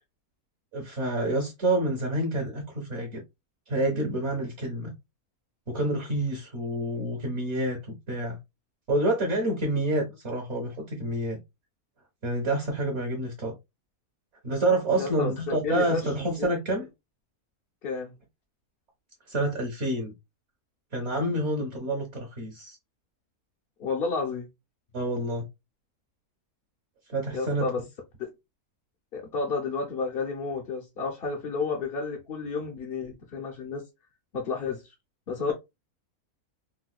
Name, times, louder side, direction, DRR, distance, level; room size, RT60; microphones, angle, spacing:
voice 1, 0.7-3.2 3.7-4.9 5.7-7.8 8.1-8.4 8.9-11.4 12.2-13.5 14.4-16.9 19.3-20.1 20.9-22.8 24.9-25.4 27.1-27.7, right 1 dB, 55° right, 1.1 m, -28 dB
voice 2, 15.0-16.1 16.4-16.5 17.8-18.1 23.8-24.5 27.3-27.8 28.2-28.3 29.1-33.8 34.3-34.8 35.3-35.5, left 4 dB, 55° left, 0.7 m, -31 dB
4.3 x 2.2 x 2.2 m
omnidirectional pair, 1.6 m